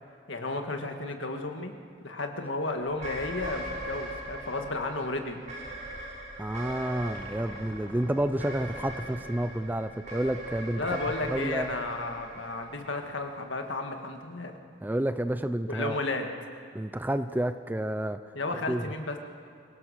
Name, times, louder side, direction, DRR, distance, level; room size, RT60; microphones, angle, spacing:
voice 1, 0.3-1.7 2.0-5.4 10.8-14.5 15.7-16.3 18.4-19.2, left 2 dB, 70° left, 4 dB, 1.9 m, -33 dB
sound 1, 3.0-13.4, right 1 dB, 35° right, 5.9 m, -40 dB
voice 2, 6.4-11.0 11.3-11.7 14.8-16.0 16.7-18.2 18.7-18.8, right 1 dB, 10° right, 11 dB, 0.4 m, -30 dB
sound 2, 7.1-10.5, equal, 10° left, 1.4 m, -49 dB
25.0 x 17.0 x 6.6 m, 2.4 s
head